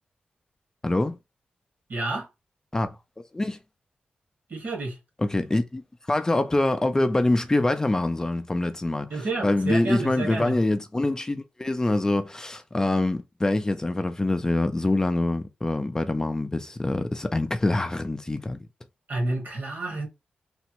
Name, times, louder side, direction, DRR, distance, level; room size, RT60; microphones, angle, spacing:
voice 1, 0.8-1.2 2.7-3.0 3.3-3.6 5.2-5.8 6.1-18.6, left 2 dB, 20° left, 0.4 m, -25 dB
voice 2, 1.9-2.3 4.5-5.0 9.1-10.6 19.1-20.1, right 2 dB, 70° right, 1.4 m, -29 dB
3.4 x 2.0 x 2.9 m
wide cardioid pair, 95°, 3 cm